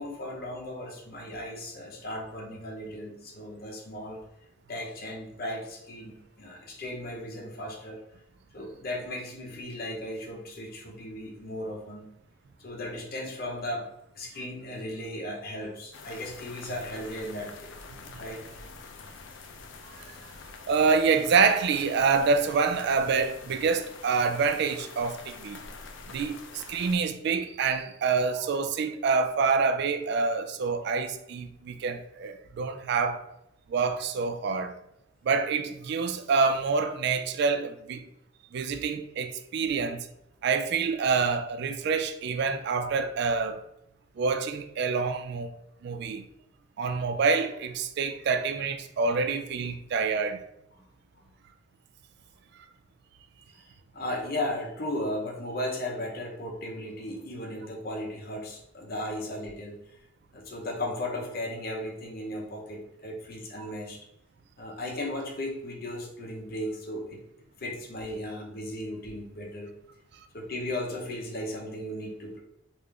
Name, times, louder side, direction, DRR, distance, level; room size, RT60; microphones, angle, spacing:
voice 1, 0.0-4.2 4.7-8.0 8.5-12.1 12.6-13.9 14.1-17.7 18.2-18.4 50.8-50.9 51.2-51.3 53.5-53.6 53.9-59.8 60.3-64.0 64.6-67.2 67.6-69.7 70.3-72.4, left 1 dB, 55° left, 0.8 m, -36 dB
sound 1, 15.9-27.0, left 4 dB, 75° left, 0.4 m, -46 dB
voice 2, 20.7-25.6 26.1-33.3 33.7-34.8 35.2-38.1 38.5-40.1 40.4-43.6 44.2-45.5 45.8-46.2 46.8-50.4 63.6-63.7, right 5 dB, 60° right, 0.3 m, -27 dB
3.5 x 2.5 x 3.3 m
head